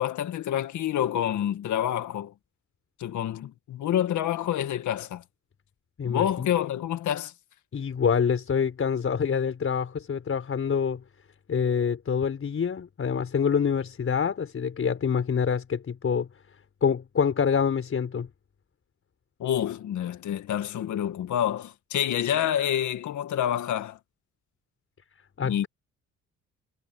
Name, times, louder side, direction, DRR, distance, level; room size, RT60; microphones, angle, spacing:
voice 1, 0.0-2.3 3.0-5.2 6.0-7.3 19.4-24.0 25.4-25.7, left 10 dB, 75° left, 1.9 m, -28 dB
voice 2, 6.0-6.5 7.7-11.0 11.5-16.3 16.8-18.3 25.4-25.7, left 6 dB, 45° left, 5.2 m, -26 dB
cardioid pair, 90°, 30 cm